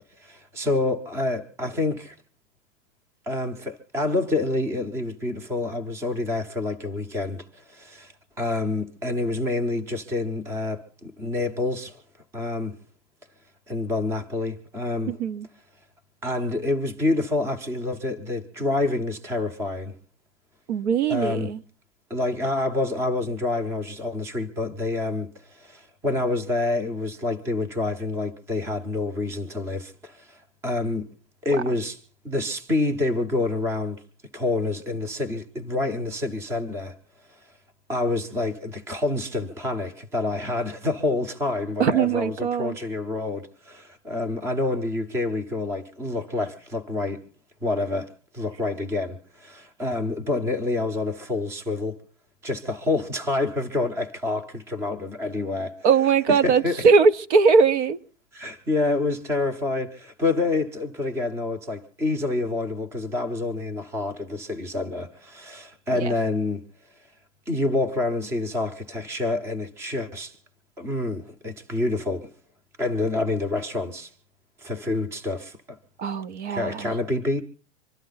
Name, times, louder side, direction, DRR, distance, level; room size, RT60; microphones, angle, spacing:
voice 1, 0.2-2.2 3.3-12.0 12.3-12.8 13.7-15.2 16.2-19.9 21.1-21.5 22.1-31.1 31.4-34.0 34.3-37.0 37.3-37.4 37.9-47.3 47.6-52.0 52.4-55.8 56.3-56.9 58.3-66.6 67.5-70.4 70.8-72.3 72.8-74.1 74.6-75.8 76.5-77.4, left 2 dB, 5° right, 0.7 m, -27 dB
voice 2, 15.1-15.5 20.7-21.6 41.8-42.8 55.8-58.0 66.0-66.1 76.0-76.9, right 5 dB, 65° right, 1.1 m, -20 dB
25.0 x 12.5 x 4.0 m
supercardioid pair, 165°, 37 cm